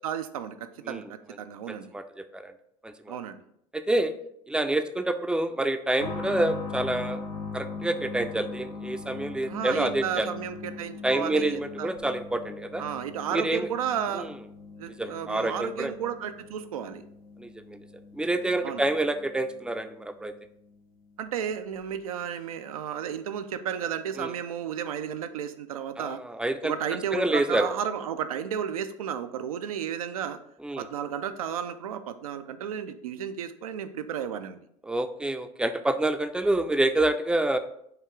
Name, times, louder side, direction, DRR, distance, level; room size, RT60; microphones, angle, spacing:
voice 1, 0.0-1.9 3.1-3.4 9.4-11.9 12.8-14.3 14.8-17.0 18.6-18.8 21.2-26.2 26.6-30.4 30.8-34.6, right 8 dB, 90° right, 9 dB, 0.4 m, -33 dB
voice 2, 1.7-2.5 2.8-3.2 3.7-4.1 4.5-7.2 7.5-10.3 11.0-12.8 13.3-13.7 14.1-14.3 15.0-15.9 17.4-17.8 18.1-20.3 24.2-24.3 26.0-26.7 27.1-27.7 30.6-30.9 34.8-37.6, right 1 dB, 5° right, 9 dB, 0.4 m, -27 dB
sound 1, 6.0-20.4 20.7-20.8 21.8-21.9, left 4 dB, 85° left, 0.7 m, -41 dB
4.7 x 2.4 x 4.6 m, 0.72 s
hypercardioid pair, 75°, 18 cm